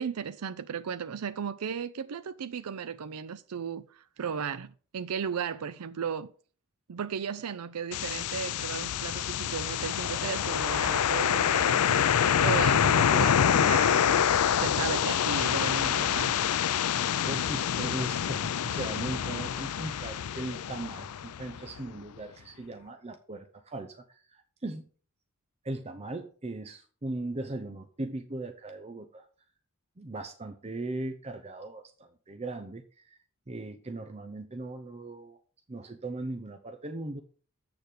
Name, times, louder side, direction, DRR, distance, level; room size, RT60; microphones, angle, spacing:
voice 1, 0.0-6.3 6.9-16.3, right 7 dB, 85° right, 0.5 m, -35 dB
sound 1, 7.9-21.8, left 8 dB, 85° left, 0.5 m, -26 dB
voice 2, 17.1-24.9 25.6-29.3 30.0-33.2 33.5-35.4 35.7-37.2, right 2 dB, 30° right, 0.7 m, -38 dB
7.9 x 6.8 x 5.0 m
head